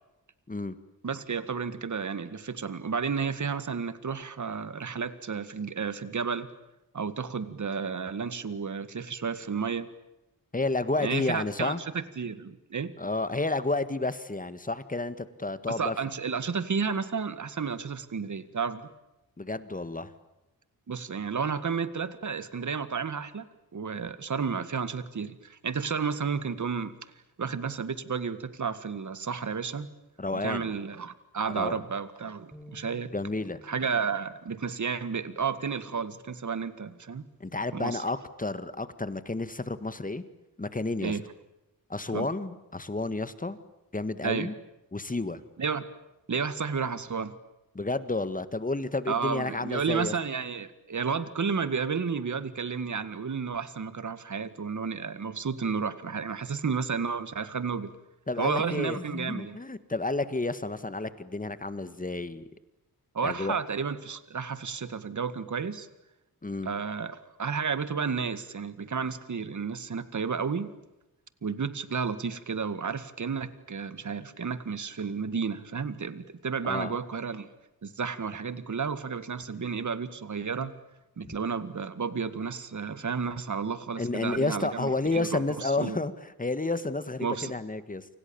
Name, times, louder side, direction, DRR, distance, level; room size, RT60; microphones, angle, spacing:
voice 1, 1.0-6.5 6.9-9.9 11.0-12.9 15.7-18.9 20.9-23.5 23.7-26.9 27.4-29.9 30.3-33.1 33.7-37.2 37.7-38.0 41.0-41.2 42.1-42.3 44.2-44.5 45.6-45.9 46.3-47.3 49.1-57.9 58.4-59.6 63.1-65.9 66.7-70.7 71.4-77.5 77.8-80.7 81.2-86.0 87.2-87.5, right 5 dB, 55° right, 13 dB, 1.9 m, -32 dB
voice 2, 10.5-11.8 13.0-16.0 19.4-20.1 30.2-30.7 31.5-31.8 33.1-33.6 37.4-40.2 40.6-41.2 41.9-43.6 43.9-44.5 44.9-45.4 47.7-50.1 58.3-62.5 63.2-63.6 66.4-66.7 76.6-77.0 84.0-88.1, left 2 dB, 20° left, 13 dB, 1.8 m, -31 dB
sound 1, 32.5-36.8 37.3-37.5 38.3-38.8, left 2 dB, 5° right, 4.3 m, -56 dB
29.0 x 26.5 x 7.2 m, 0.96 s
wide cardioid pair, 115°, 36 cm